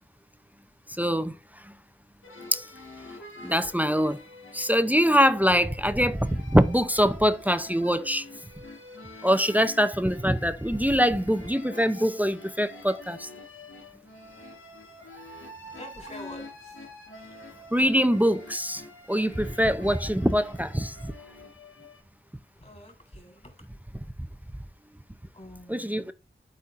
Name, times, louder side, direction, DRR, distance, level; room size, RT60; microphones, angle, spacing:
voice 1, 0.9-1.4 1.6-1.7 2.5-2.6 3.4-4.2 4.5-8.3 9.2-13.3 17.7-18.8 19.1-21.1 25.7-26.1, equal, 10° right, 0.5 m, -23 dB
sound 1, 2.2-22.0, left 2 dB, 85° left, 1.7 m, -46 dB
voice 2, 15.7-16.5 22.6-23.5 25.4-26.1, left 1 dB, 35° left, 3.2 m, -45 dB
12.0 x 4.3 x 2.5 m
wide cardioid pair, 45°, 20 cm